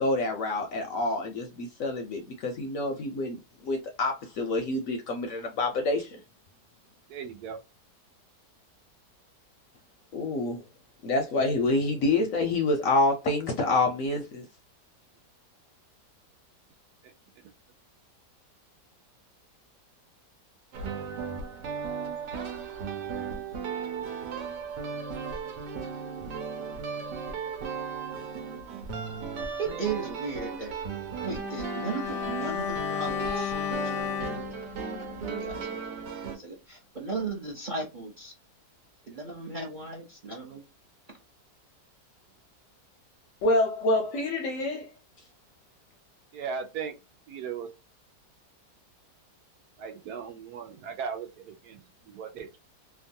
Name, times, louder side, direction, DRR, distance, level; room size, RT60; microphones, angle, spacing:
voice 1, 0.0-6.2 10.1-10.6 11.0-14.5 43.4-44.9, left 2 dB, 65° left, 0.8 m, -27 dB
voice 2, 7.1-7.6 17.0-17.1 46.3-46.9 47.3-47.7 49.8-52.6, right 6 dB, 70° right, 1.1 m, -37 dB
sound 1, 20.7-36.4, right 6 dB, 90° right, 1.3 m, -36 dB
voice 3, 29.6-30.7 31.2-34.1 35.0-35.6 35.9-36.0 36.3-38.3 39.1-40.6, right 4 dB, 45° right, 0.6 m, -36 dB
Bowed string instrument, 31.3-35.7 36.0-36.2, left 9 dB, 85° left, 1.2 m, -34 dB
2.9 x 2.3 x 2.6 m
omnidirectional pair, 1.8 m